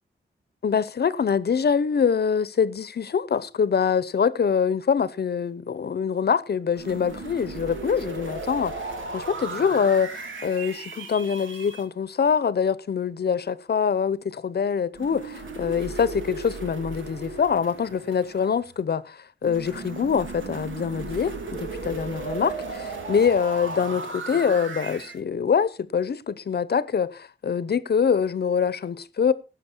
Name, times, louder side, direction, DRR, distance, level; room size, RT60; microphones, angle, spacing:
voice 1, 0.6-29.3, left 6 dB, 55° left, 0.8 m, -24 dB
sound 1, 6.8-11.8 14.9-18.7 19.4-25.2, right 3 dB, 85° right, 2.6 m, -36 dB
17.0 x 7.6 x 4.5 m
wide cardioid pair, 165°, 20 cm